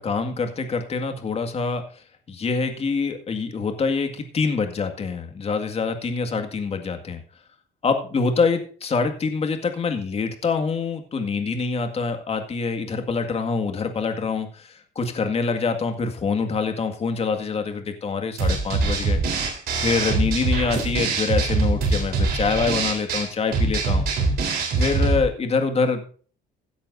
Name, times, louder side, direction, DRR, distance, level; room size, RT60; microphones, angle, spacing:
voice 1, 0.0-1.8 2.3-7.2 7.8-19.2 19.8-24.0 24.8-26.1, left 4 dB, 35° left, 6 dB, 2.0 m, -25 dB
sound 1, 18.4-25.2, right 3 dB, 65° right, 3.9 m, -23 dB
16.0 x 10.5 x 2.7 m, 0.41 s
cardioid pair, 110°, 17 cm